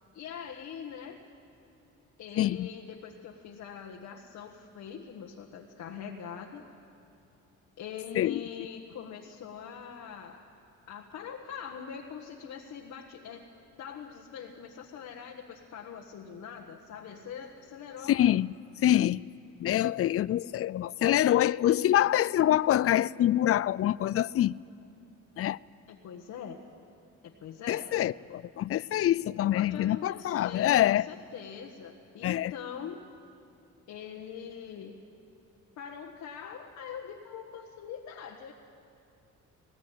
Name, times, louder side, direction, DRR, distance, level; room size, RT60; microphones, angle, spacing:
voice 1, 0.1-1.2 2.2-6.7 7.8-10.4 10.9-13.5 13.8-18.2 25.9-26.6 27.2-27.9 29.5-33.0 33.9-35.0 35.8-38.5, left 7 dB, 75° left, 1.6 m, -43 dB
voice 2, 2.4-2.7 8.2-8.4 18.1-18.5 18.8-19.2 19.6-24.6 25.4-25.6 27.7-31.1 32.2-32.5, left 12 dB, 50° left, 0.4 m, -25 dB
19.0 x 19.0 x 9.2 m
cardioid pair, 90°, 30 cm